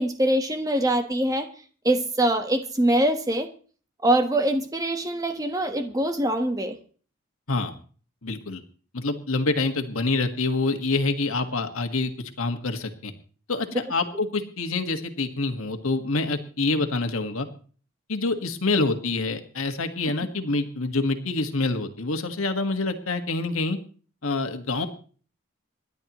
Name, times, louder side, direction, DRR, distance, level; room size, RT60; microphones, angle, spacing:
voice 1, 0.0-1.5 1.8-3.5 4.0-6.8 13.7-13.8, right 1 dB, 15° right, 7 dB, 1.2 m, -23 dB
voice 2, 8.2-8.6 8.9-13.1 13.5-17.5 18.1-23.8 24.2-24.9, left 3 dB, 90° left, 6 dB, 1.6 m, -26 dB
28.0 x 11.0 x 3.0 m, 0.42 s
head